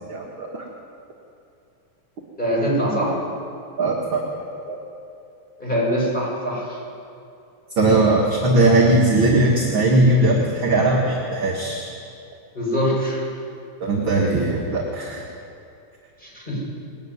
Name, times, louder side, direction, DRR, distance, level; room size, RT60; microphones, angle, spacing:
voice 1, 0.1-0.6 3.8-4.2 4.7-4.8 7.8-12.0 13.8-15.2, right 2 dB, 45° right, -1 dB, 2.5 m, -19 dB
voice 2, 2.4-3.2 5.6-6.8 12.5-13.2 16.2-16.7, equal, 15° left, -4 dB, 7.1 m, -23 dB
21.5 x 15.5 x 9.8 m, 2.6 s
omnidirectional pair, 3.5 m